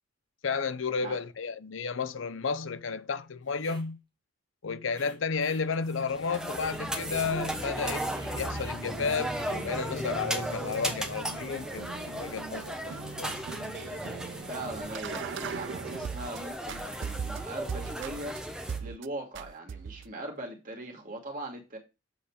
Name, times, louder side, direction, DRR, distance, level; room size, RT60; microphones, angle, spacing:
voice 1, 0.4-4.0 4.6-13.4, left 5 dB, 75° left, 0.6 m, -32 dB
sound 1, 3.5-3.9 4.9-5.7 6.5-6.9 7.7-8.8 9.3-9.6, right 2 dB, 25° right, 1.3 m, -52 dB
sound 2, 5.8-18.8, equal, 5° right, 1.1 m, -36 dB
sound 3, 6.6-16.4 16.7-18.4 18.7-19.1 19.3-20.1, right 6 dB, 60° right, 0.4 m, -41 dB
voice 2, 14.5-18.4 18.8-21.8, right 2 dB, 45° right, 2.4 m, -40 dB
7.9 x 4.2 x 5.0 m
head